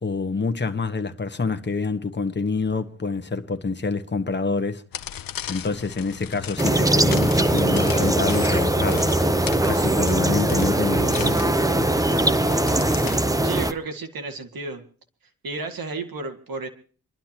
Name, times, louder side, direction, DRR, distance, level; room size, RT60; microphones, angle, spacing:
voice 1, 0.0-4.8 5.5-9.1 9.6-11.5, left 4 dB, 30° left, 1.3 m, -27 dB
sound 1, 4.9-13.2, left 10 dB, 65° left, 0.7 m, -37 dB
sound 2, 6.6-13.7, right 1 dB, 10° right, 0.7 m, -21 dB
voice 2, 12.6-13.1 13.4-14.8 15.4-16.7, right 3 dB, 70° right, 2.0 m, -33 dB
28.5 x 11.5 x 2.9 m
wide cardioid pair, 100°, 36 cm